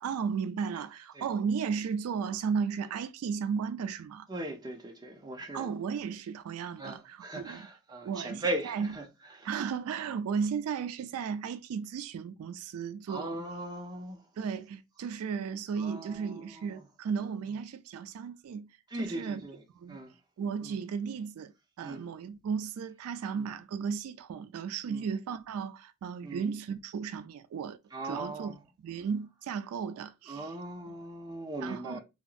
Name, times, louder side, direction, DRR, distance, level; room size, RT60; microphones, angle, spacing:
voice 1, 0.0-4.3 5.5-7.6 8.0-8.9 9.4-13.4 14.4-18.7 19.0-19.4 19.8-20.0 20.4-27.8 28.0-28.5 28.8-30.5 30.9-31.0 31.6-32.0, right 6 dB, 80° right, 0.3 m, -35 dB
voice 2, 4.3-5.7 6.8-9.0 9.4-9.5 13.1-14.2 15.8-16.8 18.9-19.6 19.9-20.1 20.6-20.7 21.8-22.0 23.4-23.5 24.9-25.1 26.2-26.5 27.9-28.6 30.3-32.0, right 1 dB, 20° right, 0.5 m, -39 dB
2.9 x 2.5 x 2.3 m
head